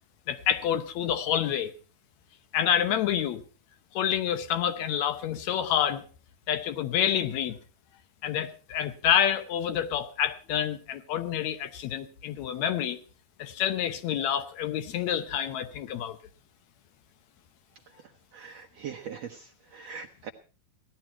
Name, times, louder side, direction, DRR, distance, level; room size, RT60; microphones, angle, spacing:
voice 1, 0.3-1.7 2.5-3.4 3.9-6.1 6.5-7.6 8.2-13.0 13.4-16.2, left 9 dB, 90° left, 10 dB, 1.5 m, -28 dB
voice 2, 17.9-20.3, right 7 dB, 85° right, 1 dB, 1.4 m, -42 dB
18.0 x 13.5 x 4.5 m, 0.36 s
omnidirectional pair, 4.5 m